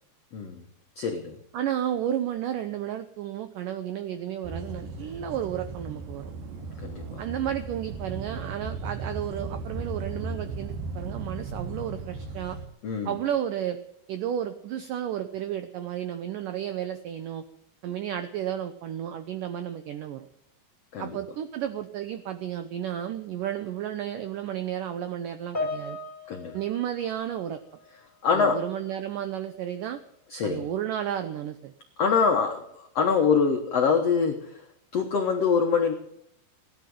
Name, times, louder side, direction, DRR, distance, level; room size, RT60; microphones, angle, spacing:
voice 1, 0.3-0.6 1.0-1.4 6.8-7.2 12.8-13.1 20.9-21.2 26.3-26.6 28.2-28.6 30.3-30.7 32.0-34.6 34.9-35.9, left 5 dB, 85° left, 4 dB, 1.3 m, -24 dB
voice 2, 1.5-6.3 7.2-12.6 13.1-13.8 14.1-17.4 17.8-20.3 21.0-26.0 26.5-27.6 28.3-30.0 30.4-31.7, right 10 dB, 85° right, 10 dB, 1.9 m, -32 dB
sound 1, 4.4-12.7, right 3 dB, 55° right, 3.6 m, -36 dB
Piano, 25.5-28.2 28.4-28.8 29.6-29.7, left 2 dB, 10° left, 3.3 m, -37 dB
17.0 x 10.5 x 7.8 m, 0.73 s
omnidirectional pair, 4.9 m